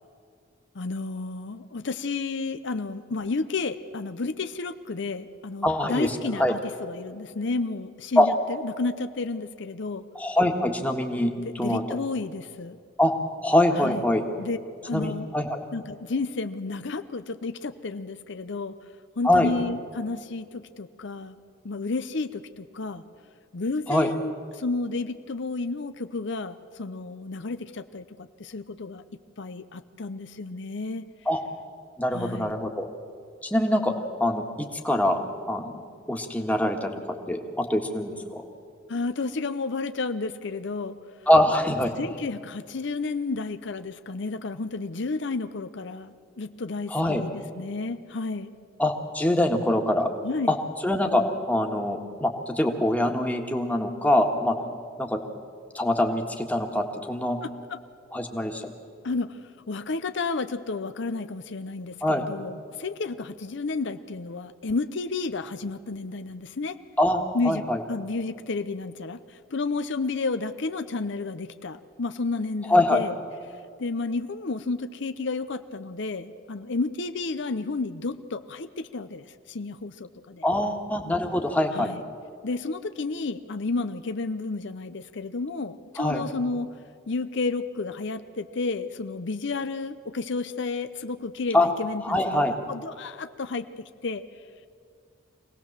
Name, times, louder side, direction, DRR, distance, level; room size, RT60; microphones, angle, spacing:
voice 1, 0.7-10.0 11.4-12.8 13.8-14.1 14.4-14.6 14.8-15.3 15.7-18.7 19.2-21.4 21.6-23.0 23.5-29.0 29.4-31.1 32.1-32.5 38.9-41.0 42.0-48.5 50.2-50.5 57.4-57.8 59.0-59.4 59.7-66.8 67.3-73.1 73.8-80.5 81.7-82.0 82.4-86.7 87.1-94.2, left 3 dB, 65° left, 11 dB, 0.7 m, -31 dB
voice 2, 5.6-6.5 8.2-8.3 10.1-11.3 11.6-11.8 13.0-13.1 13.4-14.2 14.9-15.6 19.2-19.5 23.9-24.1 31.2-31.4 32.0-32.9 33.4-33.9 34.2-35.2 35.5-35.8 36.1-36.9 37.3-38.4 41.3-41.9 46.9-47.2 48.8-50.1 50.5-50.6 50.8-54.6 55.0-55.2 55.7-57.4 58.1-58.6 62.0-62.2 67.0-67.8 72.7-73.0 80.4-81.9 86.0-86.2 91.5-91.7 92.0-92.5, left 1 dB, 10° left, 2 dB, 1.7 m, -24 dB
24.5 x 18.0 x 7.4 m, 2.3 s
head